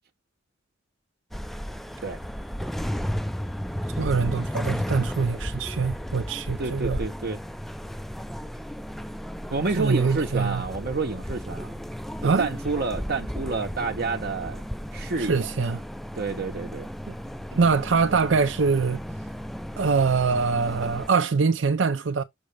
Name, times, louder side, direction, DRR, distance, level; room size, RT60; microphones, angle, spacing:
sound 1, 1.3-21.1, equal, ahead, 0.4 m, -34 dB
voice 1, 4.0-7.0 9.8-10.6 12.2-12.5 15.2-15.8 17.1-17.2 17.5-19.0 19.8-22.2, right 5 dB, 80° right, 0.6 m, -23 dB
voice 2, 6.6-7.4 9.5-11.8 12.4-14.6 14.9-15.5 16.1-16.9, right 3 dB, 55° right, 0.8 m, -29 dB
6.4 x 6.2 x 3.3 m
head